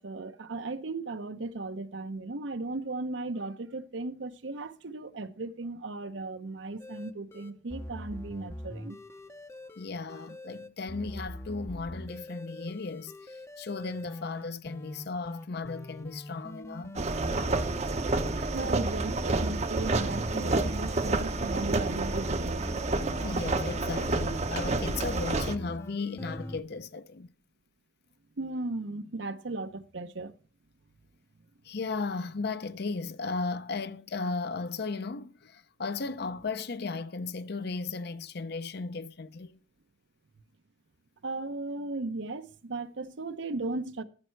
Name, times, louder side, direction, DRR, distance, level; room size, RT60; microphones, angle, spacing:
voice 1, 0.0-9.0 18.3-22.7 28.4-30.3 41.2-44.0, right 2 dB, 70° right, 0.8 m, -36 dB
sound 1, 6.8-26.6, left 1 dB, 15° left, 0.6 m, -42 dB
voice 2, 9.8-16.9 23.2-27.3 31.6-39.6, left 4 dB, 55° left, 0.6 m, -35 dB
sound 2, 16.9-25.5, right 3 dB, 35° right, 0.7 m, -29 dB
14.0 x 5.5 x 4.5 m
head